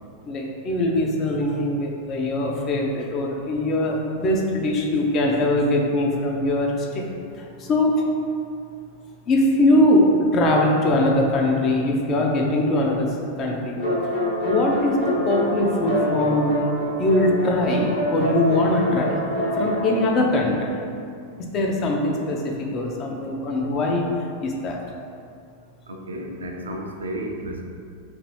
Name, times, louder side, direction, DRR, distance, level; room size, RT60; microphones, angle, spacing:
voice 1, 0.2-7.1 7.4-8.0 9.3-13.1 13.4-13.8 14.4-16.6 17.0-19.2 19.6-20.7 21.5-24.0 24.4-24.8, left 1 dB, 30° left, 0 dB, 0.4 m, -22 dB
sound 1, 13.8-20.0, equal, 45° left, 1.1 m, -25 dB
voice 2, 25.9-27.6, right 1 dB, 70° right, 2 dB, 0.3 m, -33 dB
2.7 x 2.6 x 3.0 m, 2.3 s
figure-of-eight pair, 90°, 0 cm